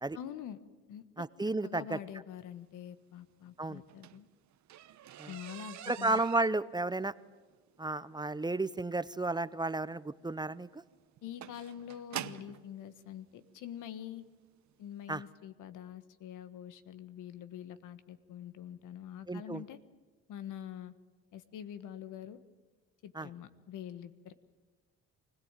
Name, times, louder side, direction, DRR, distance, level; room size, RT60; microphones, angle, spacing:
voice 1, 0.1-0.6 0.9-1.0 1.6-4.3 5.3-6.2 11.2-14.2 14.8-19.8 20.3-20.9 21.3-22.4 23.0-24.3, left 10 dB, 85° left, 12 dB, 1.5 m, -45 dB
voice 2, 1.2-2.0 3.6-3.8 5.2-5.3 5.9-7.1 7.8-10.8 15.1-15.2 19.3-19.6 23.2-23.3, right 2 dB, 15° right, 16 dB, 0.6 m, -33 dB
sound 1, 3.8-12.6 13.5-13.6 14.2-14.4 14.7-14.8 15.1-15.2, right 12 dB, 70° right, 1.0 m, -47 dB
24.5 x 17.0 x 9.1 m, 1.3 s
cardioid pair, 90°, 30 cm